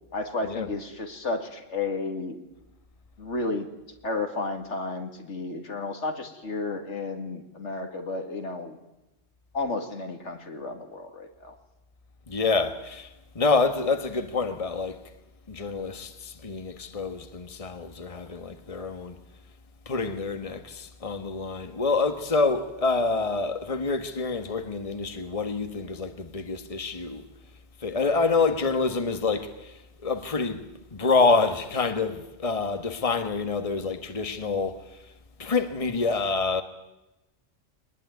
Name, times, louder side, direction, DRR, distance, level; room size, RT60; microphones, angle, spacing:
voice 1, 0.1-2.4 3.2-3.7 4.0-8.8 9.5-11.5, left 3 dB, 80° left, 2.5 m, -32 dB
voice 2, 12.3-15.0 15.5-19.2 19.8-27.2 27.8-30.7 30.9-35.0 35.4-36.6, left 4 dB, 30° left, 1.5 m, -27 dB
22.0 x 20.0 x 9.4 m
omnidirectional pair, 1.2 m